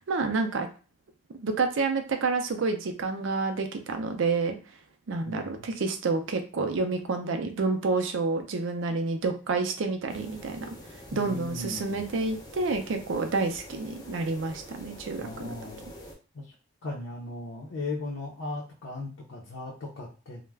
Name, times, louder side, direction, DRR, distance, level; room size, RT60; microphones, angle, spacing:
voice 1, 0.1-0.7 1.3-4.6 5.1-10.7 11.1-15.5, right 3 dB, 75° right, 5 dB, 0.4 m, -29 dB
voice 2, 5.2-5.7 11.1-12.0 15.2-15.8 16.3-16.5 16.8-20.4, left 2 dB, 80° left, -3 dB, 0.6 m, -37 dB
sound 1, 10.1-16.1, left 1 dB, 20° left, 0.4 m, -46 dB
2.3 x 2.1 x 3.3 m, 0.34 s
head